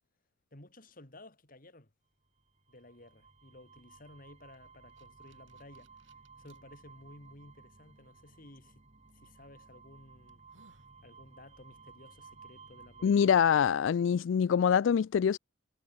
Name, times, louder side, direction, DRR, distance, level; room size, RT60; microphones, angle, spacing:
voice 1, 0.5-1.9 2.7-6.1 6.4-8.8 9.1-10.4 11.0-13.3, left 1 dB, 45° left, 3.4 m, -55 dB
sound 1, 2.4-13.4, right 4 dB, 35° right, 2.2 m, -57 dB
sound 2, 4.5-6.6 7.3-7.4 9.1-9.3 9.8-9.9 10.3-10.9, right 3 dB, 75° right, 6.4 m, -67 dB
voice 2, 13.0-15.4, left 7 dB, 70° left, 0.3 m, -25 dB
head